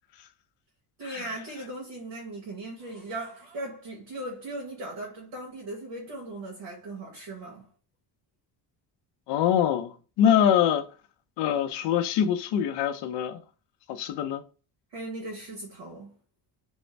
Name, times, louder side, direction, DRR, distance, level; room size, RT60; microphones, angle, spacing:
voice 1, 1.0-7.7 14.9-16.2, right 2 dB, 70° right, 1.0 m, -38 dB
voice 2, 9.3-10.9 11.4-13.4 13.9-14.4, left 9 dB, 65° left, 0.5 m, -24 dB
2.5 x 2.1 x 3.1 m
cardioid pair, 165°, 46 cm